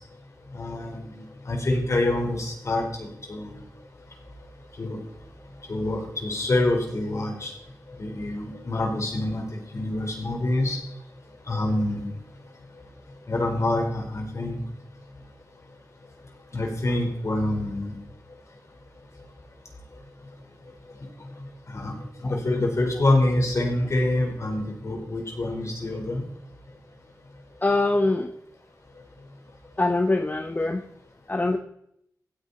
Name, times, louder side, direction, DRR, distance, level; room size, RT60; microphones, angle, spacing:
voice 1, 0.5-3.5 4.8-5.0 5.7-7.5 8.0-9.4 9.7-10.8 11.5-12.1 13.3-14.6 16.5-17.9 21.7-21.9 22.2-26.2, left 2 dB, 50° left, 1 dB, 4.5 m, -26 dB
voice 2, 27.6-28.3 29.8-30.8 31.3-31.6, left 2 dB, 25° left, 7 dB, 0.9 m, -23 dB
16.0 x 9.0 x 4.3 m, 0.74 s
cardioid pair, 60°, 7 cm